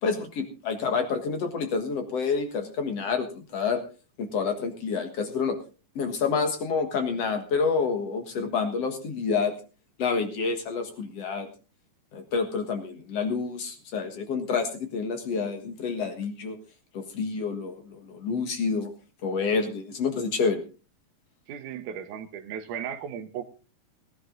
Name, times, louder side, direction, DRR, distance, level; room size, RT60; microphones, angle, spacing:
voice 1, 0.0-3.8 4.2-5.5 6.0-9.5 10.0-11.5 12.1-16.6 16.9-18.9 19.2-20.6, left 5 dB, 50° left, 6 dB, 2.3 m, -28 dB
voice 2, 21.5-23.5, right 8 dB, 65° right, 6 dB, 2.3 m, -36 dB
18.5 x 11.0 x 3.9 m, 0.35 s
omnidirectional pair, 4.1 m